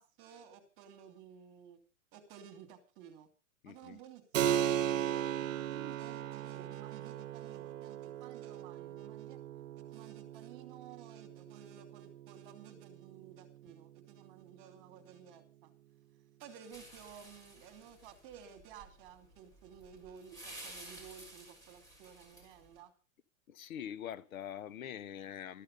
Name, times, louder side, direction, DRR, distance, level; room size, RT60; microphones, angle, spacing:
voice 1, 0.0-1.8 2.1-3.3 3.6-9.4 9.8-15.7 16.4-22.9, right 8 dB, 35° right, 2.9 m, -54 dB
voice 2, 3.6-4.0 23.5-25.6, left 9 dB, 80° left, 1.2 m, -44 dB
Keyboard (musical), 4.3-14.6, right 10 dB, 70° right, 1.1 m, -38 dB
sound 1, 16.7-22.8, right 1 dB, 10° left, 4.0 m, -53 dB
13.5 x 12.0 x 5.3 m
supercardioid pair, 165°, 41 cm